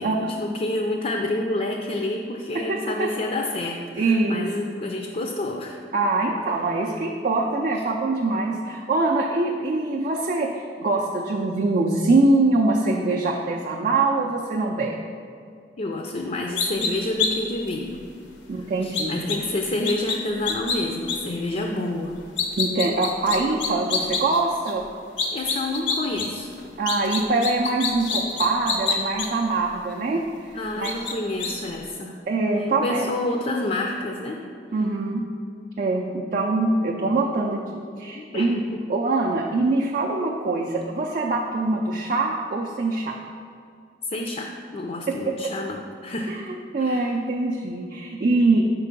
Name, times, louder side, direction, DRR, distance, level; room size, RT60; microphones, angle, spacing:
voice 1, 0.0-5.8 15.8-18.0 18.8-22.2 25.3-26.5 30.5-32.2 32.6-34.4 38.1-38.8 44.1-46.4 46.8-47.1, left 2 dB, 40° left, 2 dB, 0.4 m, -28 dB
voice 2, 2.7-3.1 4.0-4.5 5.9-15.0 18.5-19.3 22.6-24.8 26.8-30.2 30.5-30.9 32.3-33.1 34.7-35.2 35.8-38.6 38.9-43.2 46.3-48.6, right 2 dB, 45° right, -1 dB, 0.4 m, -23 dB
sound 1, 16.6-16.9 17.2-17.3 17.7-17.8 18.9-19.4 19.8-20.2 20.5-20.8 21.1-21.2 22.2-24.4 24.7-24.8 25.2-26.3 26.5-29.3 29.9-30.0 30.8-31.1 31.4-31.5, left 5 dB, 85° left, 0.7 m, -26 dB
5.7 x 4.5 x 5.2 m, 2.3 s
head